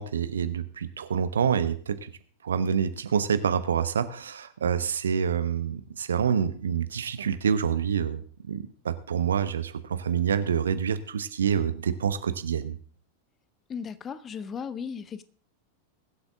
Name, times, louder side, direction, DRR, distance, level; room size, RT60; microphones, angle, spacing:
voice 1, 0.0-2.1 2.4-12.8, right 7 dB, 70° right, 0.9 m, -27 dB
voice 2, 13.7-15.2, left 6 dB, 25° left, 0.7 m, -36 dB
22.0 x 8.0 x 3.7 m
figure-of-eight pair, 90°, 0 cm